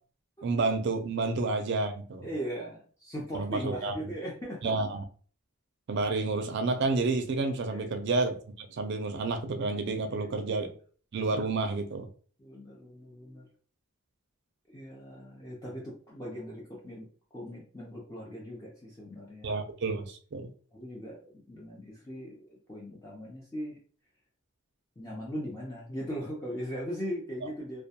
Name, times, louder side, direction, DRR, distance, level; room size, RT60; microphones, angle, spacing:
voice 1, 0.4-2.3 3.3-3.9 4.6-5.0 5.9-10.7 11.1-12.1 19.4-20.5, right 3 dB, 55° right, 0.4 m, -30 dB
voice 2, 2.2-5.0 7.7-8.0 10.1-10.5 12.4-13.5 14.7-17.1 17.3-19.6 20.7-23.8 25.0-27.8, equal, 15° left, 0.5 m, -39 dB
2.2 x 2.2 x 2.7 m
head